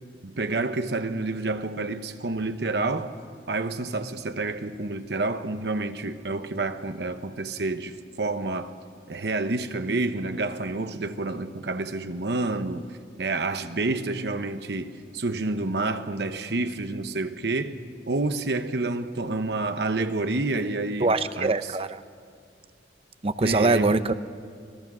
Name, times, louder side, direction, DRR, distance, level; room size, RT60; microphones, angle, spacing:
voice 1, 0.2-3.1 3.5-8.7 9.1-12.9 13.2-17.8 18.1-21.6 23.4-24.0, right 2 dB, 65° right, 1.0 m, -29 dB
voice 2, 21.0-22.0 23.2-24.1, right 3 dB, 30° right, 0.6 m, -23 dB
26.0 x 18.0 x 6.2 m
head